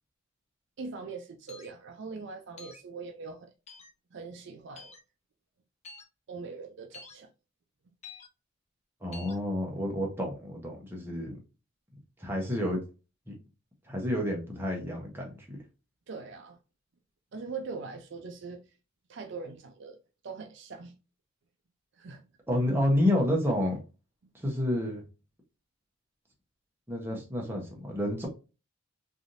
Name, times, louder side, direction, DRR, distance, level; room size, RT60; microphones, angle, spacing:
voice 1, 0.8-3.5 4.1-4.9 6.3-7.3 16.1-16.6 17.3-18.6 19.1-20.0 20.2-20.9 22.0-22.2 28.1-28.3, right 4 dB, 60° right, 0.4 m, -41 dB
sound 1, 1.5-1.7 2.6-2.8 3.7-3.9 4.8-5.0 5.8-6.0 6.9-7.1 8.0-8.3 9.1-9.4, left 4 dB, 30° left, 0.5 m, -47 dB
voice 2, 9.0-11.4 12.2-12.8 13.3-13.4 13.9-15.6 22.5-23.8 24.3-25.0 26.9-28.3, left 1 dB, 10° right, 0.8 m, -29 dB
3.3 x 2.7 x 2.5 m
head